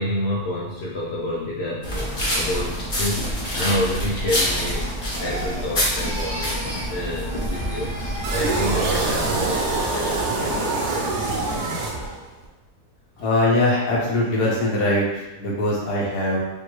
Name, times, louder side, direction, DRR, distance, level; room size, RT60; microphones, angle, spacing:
voice 1, 0.0-11.1 13.2-13.3, left 1 dB, 55° left, -5 dB, 0.8 m, -29 dB
sound 1, 1.8-8.9, equal, 35° left, 1.1 m, -27 dB
Crying sobbing, 4.4-7.0 7.2-9.4 9.8-10.2, right 1 dB, 35° right, 0.8 m, -36 dB
sound 2, 8.2-12.5, right 2 dB, 85° right, 1.4 m, -24 dB
voice 2, 13.2-16.4, left 1 dB, 80° left, -5 dB, 1.7 m, -21 dB
5.5 x 2.7 x 3.0 m, 1.1 s
omnidirectional pair, 1.7 m